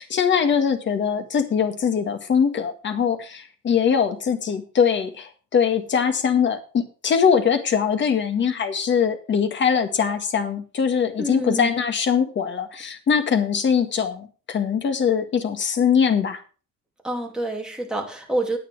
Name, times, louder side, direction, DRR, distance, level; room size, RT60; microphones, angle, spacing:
voice 1, 0.0-16.4, left 7 dB, 40° left, 7 dB, 1.8 m, -22 dB
voice 2, 11.2-11.8 17.0-18.6, right 1 dB, 5° right, 0 dB, 2.5 m, -27 dB
9.5 x 9.1 x 4.8 m, 0.36 s
cardioid pair, 130°, 29 cm